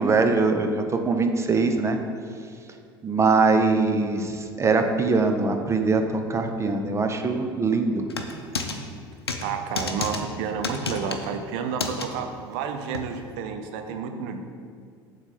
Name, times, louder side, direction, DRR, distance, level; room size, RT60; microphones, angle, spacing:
voice 1, 0.0-2.0 3.0-8.1, right 4 dB, 20° right, 5 dB, 0.7 m, -22 dB
sound 1, 8.1-8.8 9.3-9.4 9.8-10.2 10.6-11.3 11.8-12.1 12.9-13.0, left 4 dB, 80° left, 0.6 m, -29 dB
voice 2, 9.4-14.4, right 6 dB, 55° right, 6 dB, 0.7 m, -30 dB
7.2 x 4.0 x 6.5 m, 2.1 s
figure-of-eight pair, 70°, 13 cm